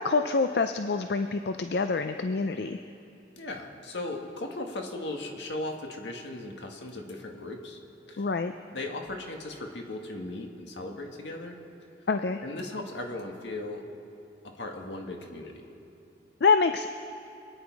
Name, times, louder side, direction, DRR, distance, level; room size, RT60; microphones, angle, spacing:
voice 1, 0.0-2.8 8.2-8.5 12.1-12.4 16.4-16.9, left 4 dB, 65° left, 8 dB, 0.5 m, -26 dB
voice 2, 3.4-7.8 8.1-8.3 8.7-11.6 12.4-13.8 14.4-15.7, left 2 dB, 80° left, 2 dB, 1.8 m, -37 dB
25.5 x 9.8 x 4.7 m, 2.7 s
head